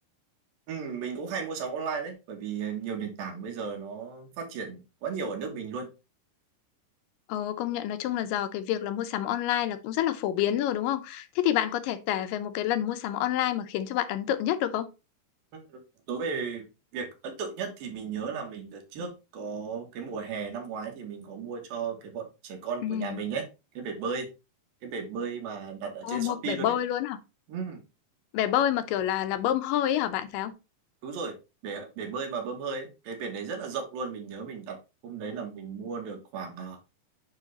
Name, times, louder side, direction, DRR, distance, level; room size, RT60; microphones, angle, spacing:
voice 1, 0.7-5.9 15.5-15.8 16.1-16.7 16.9-23.5 23.7-24.3 24.8-26.8 27.5-27.8 31.0-31.4 31.6-34.8 35.0-36.8, right 5 dB, 85° right, 3.2 m, -35 dB
voice 2, 7.3-14.9 22.8-23.2 26.0-27.2 28.3-30.5, left 11 dB, 80° left, 2.3 m, -28 dB
9.0 x 3.3 x 4.0 m
omnidirectional pair, 4.0 m